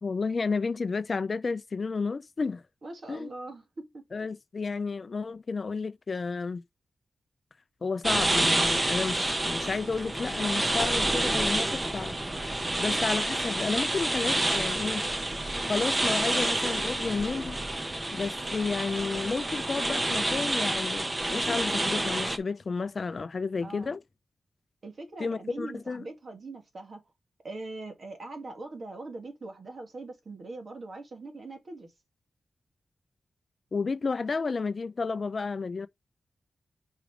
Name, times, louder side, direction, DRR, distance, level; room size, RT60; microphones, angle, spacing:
voice 1, 0.0-2.6 3.1-3.3 4.1-6.6 7.8-12.2 12.8-15.0 15.7-17.6 18.1-24.0 25.2-26.1 33.7-35.9, left 4 dB, 40° left, 0.4 m, -31 dB
voice 2, 2.8-3.6 3.9-4.0 12.8-13.1 23.6-23.9 24.8-27.0 27.4-31.9, right 2 dB, 45° right, 2.1 m, -41 dB
sound 1, 8.0-22.4, right 1 dB, 20° right, 0.9 m, -28 dB
5.0 x 4.9 x 4.9 m
wide cardioid pair, 150°, 0 cm